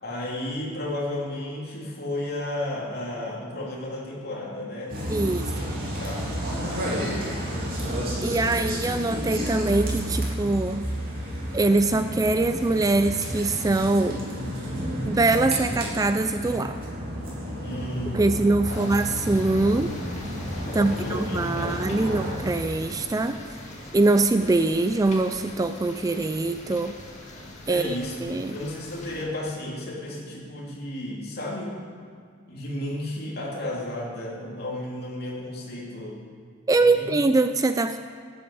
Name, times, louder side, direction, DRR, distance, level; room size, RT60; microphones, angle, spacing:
voice 1, 0.0-5.0 5.3-5.6 6.0-7.4 17.6-18.8 20.7-22.2 27.7-28.1 28.5-31.8 32.5-36.2 36.7-37.1, left 1 dB, 50° left, -3 dB, 3.0 m, -33 dB
sound 1, 4.9-22.3, equal, 45° right, 3.6 m, -31 dB
voice 2, 5.1-5.8 8.2-10.8 11.5-14.3 15.1-16.8 18.1-19.9 20.7-23.4 23.9-26.9 27.7-28.0 28.2-28.6 36.7-38.0, right 2 dB, 15° right, 9 dB, 0.3 m, -23 dB
sound 2, 18.7-29.2, left 1 dB, 35° left, 2.2 m, -42 dB
13.0 x 8.6 x 8.5 m, 2.2 s
head